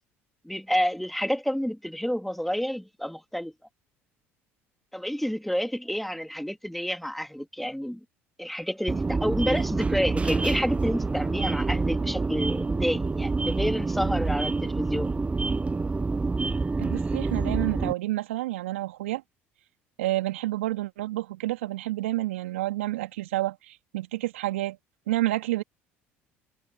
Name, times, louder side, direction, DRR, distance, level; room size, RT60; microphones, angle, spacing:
voice 1, 0.4-3.5 4.9-8.0 8.4-15.2, equal, ahead, 3.5 m, -29 dB
sound 1, 8.9-17.9, right 3 dB, 20° right, 0.7 m, -27 dB
voice 2, 16.8-19.2 20.0-24.8 25.1-25.6, right 17 dB, 80° right, 2.5 m, -29 dB
hypercardioid pair, 65°, 7 cm